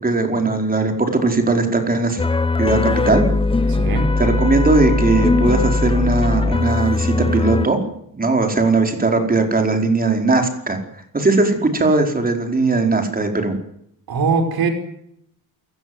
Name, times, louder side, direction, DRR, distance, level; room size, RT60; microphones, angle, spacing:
voice 1, 0.0-2.2 2.6-3.2 4.2-7.8 8.1-10.8 11.1-13.6, right 3 dB, 25° right, 4 dB, 4.9 m, -18 dB
sound 1, 2.2-7.7, left 3 dB, 15° left, 0.9 m, -19 dB
voice 2, 3.8-4.1 14.1-14.7, right 4 dB, 80° right, 7 dB, 5.5 m, -20 dB
28.5 x 17.5 x 8.1 m, 0.74 s
wide cardioid pair, 145°, 36 cm